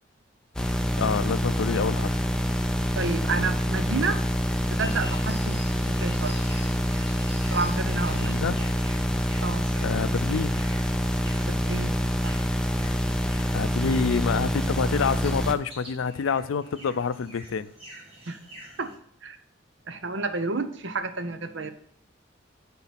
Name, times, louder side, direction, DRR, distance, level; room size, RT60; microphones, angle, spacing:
sound 1, 0.5-15.5, equal, 5° left, 0.4 m, -26 dB
voice 1, 1.0-2.2 8.2-8.7 9.8-10.6 13.5-17.7, left 6 dB, 85° left, 0.4 m, -27 dB
voice 2, 3.0-4.2 4.7-6.3 7.5-8.3 9.4-9.7 11.4-11.9 12.2-12.3 18.3-18.4 18.8-18.9 19.2-19.4 19.9-21.7, right 3 dB, 70° right, 0.7 m, -30 dB
sound 2, 4.7-18.9, equal, 30° right, 2.1 m, -47 dB
10.0 x 3.9 x 5.7 m
head